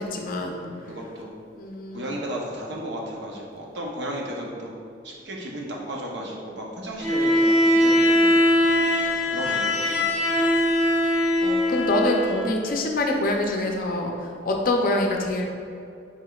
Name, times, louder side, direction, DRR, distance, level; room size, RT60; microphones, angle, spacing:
voice 1, 0.0-0.6 1.6-2.2 11.4-15.4, left 1 dB, 50° left, 2 dB, 0.5 m, -25 dB
voice 2, 0.6-1.4 1.9-4.7 5.0-8.4 9.0-10.1, right 1 dB, 65° right, -2 dB, 0.7 m, -34 dB
Bowed string instrument, 7.0-12.6, left 1 dB, 15° right, 0.8 m, -21 dB
4.9 x 4.3 x 2.3 m, 2.5 s
head